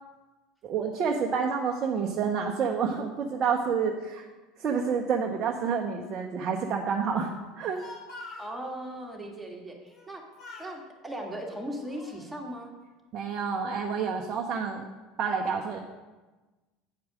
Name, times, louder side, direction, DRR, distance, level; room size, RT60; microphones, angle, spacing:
voice 1, 0.6-4.2 4.6-7.3 7.6-7.8 13.1-14.8 15.2-15.8, right 6 dB, 45° right, 1 dB, 0.9 m, -28 dB
Speech, 7.5-8.5 9.9-10.1 10.4-10.8 11.5-12.3, left 3 dB, 50° left, 1.8 m, -45 dB
voice 2, 8.4-10.2 10.6-12.7, equal, 10° right, 0 dB, 1.9 m, -38 dB
8.5 x 4.8 x 6.2 m, 1.2 s
hypercardioid pair, 75°, 0 cm